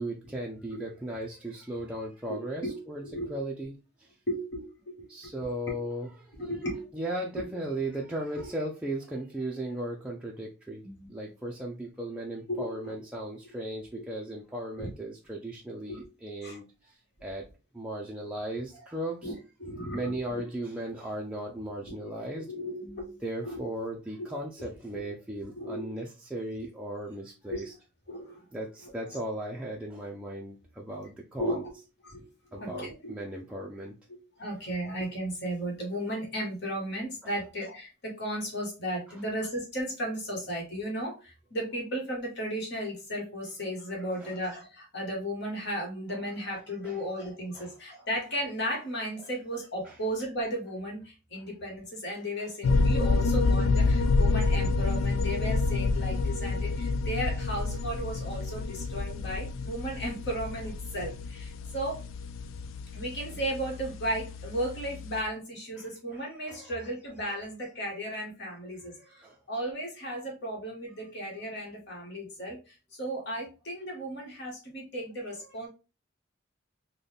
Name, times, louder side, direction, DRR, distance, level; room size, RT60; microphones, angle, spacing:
voice 1, 0.0-3.0 3.3-4.1 5.1-6.5 6.9-10.8 11.1-17.0 17.2-17.4 17.7-19.3 19.9-22.5 23.2-27.6 28.5-31.6 32.5-33.9 37.2-37.3 39.1-39.2 44.2-44.4 46.1-46.2 46.8-47.0 47.5-47.8 49.2-49.3 49.8-49.9 52.4-52.5 53.1-53.2 65.8-66.8 68.8-69.4, right 1 dB, 5° right, -3 dB, 0.4 m, -37 dB
voice 2, 2.3-2.8 3.0-3.3 4.3-5.3 5.7-5.8 6.3-6.8 7.3-7.5 8.4-8.5 10.8-11.1 12.5-13.0 14.8-14.9 15.9-16.0 16.4-16.6 19.2-19.3 19.6-20.4 21.9-22.0 22.5-23.1 23.4-23.6 24.6-25.0 25.5-25.8 27.5-27.6 28.1-28.5 28.8-29.2 31.4-31.7 32.0-32.2 32.5-33.1 34.4-62.0 62.9-75.7, equal, 60° left, -1 dB, 1.3 m, -35 dB
sound 1, 52.6-65.2, left 3 dB, 80° left, 0.3 m, -28 dB
3.8 x 2.2 x 3.3 m, 0.31 s
head